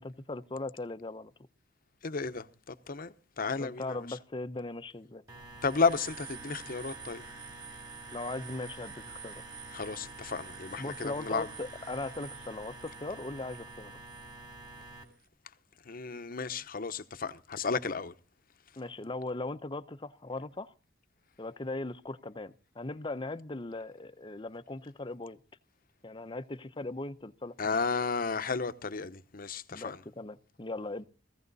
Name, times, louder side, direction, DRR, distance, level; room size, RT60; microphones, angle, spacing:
voice 1, 0.0-1.3 3.6-5.2 8.1-9.4 10.8-14.0 18.8-20.7 21.4-25.4 26.0-27.7 29.7-31.0, left 2 dB, 25° left, 0.7 m, -39 dB
voice 2, 2.0-4.2 5.6-7.2 9.7-11.5 15.8-18.1 27.6-30.0, left 4 dB, 50° left, 0.9 m, -33 dB
sound 1, 5.3-15.0, right 3 dB, 20° right, 3.1 m, -46 dB
16.5 x 15.5 x 4.0 m
head